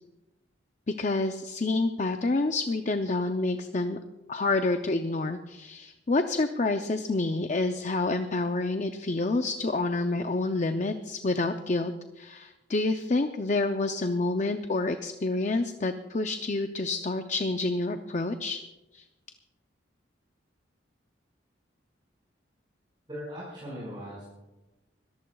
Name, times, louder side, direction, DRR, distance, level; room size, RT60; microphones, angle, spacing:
voice 1, 0.9-4.0 4.3-18.6 18.9-19.0, left 2 dB, 40° left, 7 dB, 0.5 m, -28 dB
voice 2, 23.1-24.2, equal, 25° right, -7 dB, 5.4 m, -39 dB
26.0 x 14.0 x 2.3 m, 1.1 s
head